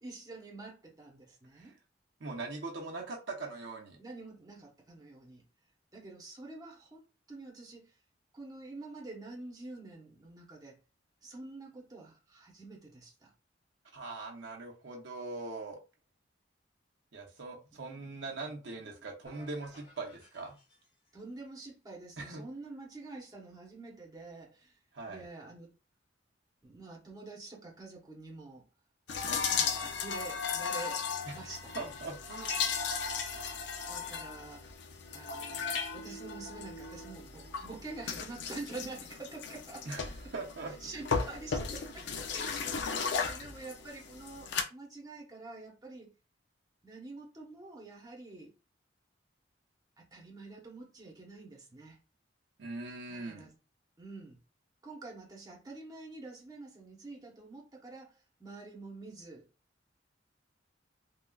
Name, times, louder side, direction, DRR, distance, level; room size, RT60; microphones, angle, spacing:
voice 1, 0.0-1.7 4.0-5.4 5.9-7.9 8.3-10.8 11.2-13.3 17.7-18.0 18.4-18.5 18.8-19.0 21.1-24.8 25.1-25.7 26.6-28.7 29.2-31.0 31.3-31.9 33.9-34.6 35.1-40.3 40.8-46.1 46.8-48.5 50.0-52.0 53.1-53.5 54.0-54.4 54.8-58.1 58.4-59.5, right 3 dB, 20° right, 0.9 m, -47 dB
voice 2, 2.2-4.0 13.9-15.8 17.1-20.5 22.2-22.4 24.9-25.2 31.3-31.4 31.7-32.7 39.9-41.0 52.6-53.5, right 3 dB, 75° right, 0.8 m, -41 dB
sound 1, 19.2-21.3, equal, 30° left, 1.3 m, -59 dB
sound 2, 29.1-44.6, left 6 dB, 65° left, 0.5 m, -36 dB
3.6 x 2.3 x 2.3 m
head